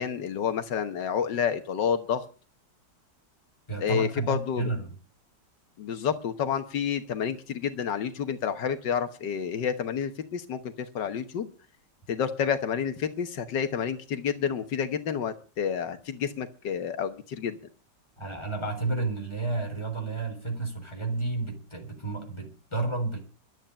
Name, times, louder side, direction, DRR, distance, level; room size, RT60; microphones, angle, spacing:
voice 1, 0.0-2.3 3.8-4.7 5.8-11.5 12.1-17.6, left 7 dB, 85° left, 9 dB, 1.8 m, -29 dB
voice 2, 3.7-4.9 18.2-23.2, right 3 dB, 15° left, 2 dB, 4.0 m, -31 dB
12.0 x 9.3 x 8.7 m, 0.39 s
omnidirectional pair, 1.8 m